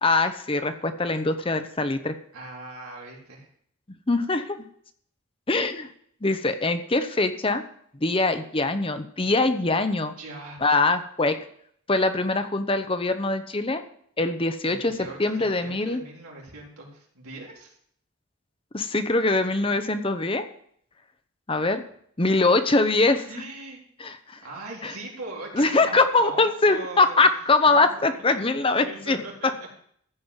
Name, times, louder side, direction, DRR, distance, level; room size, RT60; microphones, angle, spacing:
voice 1, 0.0-2.1 4.1-4.6 5.5-5.9 6.2-7.6 8.0-10.1 10.6-11.4 11.9-13.8 14.2-16.0 18.7-20.5 21.5-21.8 22.2-23.2 24.0-24.4 24.8-24.9 25.5-29.2, left 3 dB, 25° left, 9 dB, 0.8 m, -23 dB
voice 2, 2.3-3.5 9.9-10.6 14.7-17.8 23.2-23.8 24.4-27.3 27.8-28.4 28.8-29.7, right 2 dB, 90° right, -3 dB, 3.9 m, -40 dB
14.5 x 5.3 x 8.1 m, 0.65 s
head